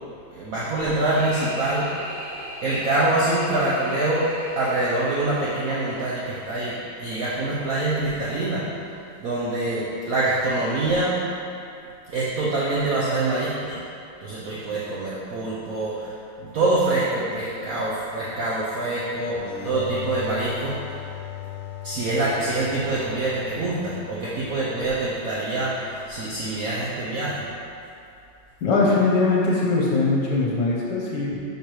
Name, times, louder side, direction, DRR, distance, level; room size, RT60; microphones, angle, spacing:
voice 1, 0.3-2.0 2.6-8.7 9.2-11.2 12.1-13.8 14.2-20.8 21.8-27.4, right 2 dB, 60° right, -7 dB, 1.0 m, -25 dB
sound 1, 0.8-6.0, equal, 85° right, 2.2 m, -38 dB
sound 2, 19.4-26.8, left 10 dB, 90° left, 1.3 m, -39 dB
voice 2, 28.6-31.4, left 3 dB, 70° left, -4 dB, 1.4 m, -21 dB
6.5 x 5.4 x 3.0 m, 2.6 s
omnidirectional pair, 2.0 m